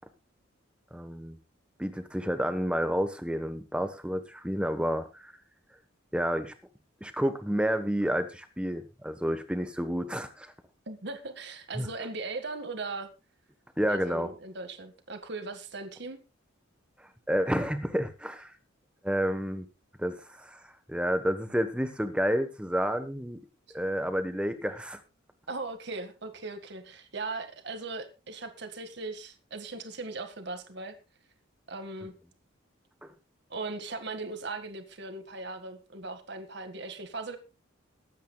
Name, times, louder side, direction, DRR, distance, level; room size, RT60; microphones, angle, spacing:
voice 1, 0.9-1.4 1.8-5.3 6.1-6.5 7.0-10.5 11.7-11.9 13.8-14.3 17.0-18.5 19.0-19.6 20.0-23.4 23.7-25.0 33.0-33.1, equal, 5° right, 9 dB, 1.1 m, -30 dB
voice 2, 10.9-13.1 13.9-16.2 23.7-23.8 25.5-31.0 31.7-32.2 33.5-37.4, right 3 dB, 55° right, 8 dB, 1.8 m, -38 dB
22.0 x 9.3 x 2.3 m, 0.29 s
head